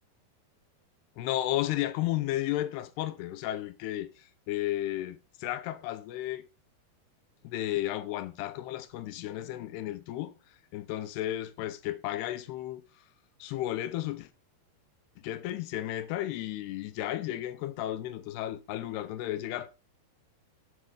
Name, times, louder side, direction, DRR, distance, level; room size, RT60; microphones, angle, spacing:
voice 1, 1.2-6.5 7.4-10.3 10.7-12.8 13.4-14.3 15.2-19.7, left 14 dB, 80° left, 2.8 m, -33 dB
11.5 x 7.5 x 4.9 m
omnidirectional pair, 4.8 m